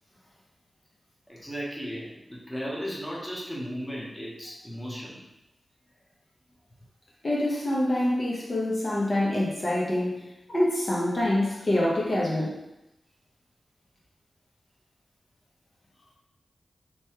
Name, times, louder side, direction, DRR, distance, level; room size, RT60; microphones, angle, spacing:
voice 1, 1.3-5.2 8.4-8.5, equal, 5° left, -5 dB, 0.8 m, -36 dB
voice 2, 7.2-10.2 10.5-12.5, left 1 dB, 40° left, -5 dB, 0.8 m, -26 dB
3.0 x 2.2 x 2.9 m, 0.91 s
cardioid pair, 55°, 0 cm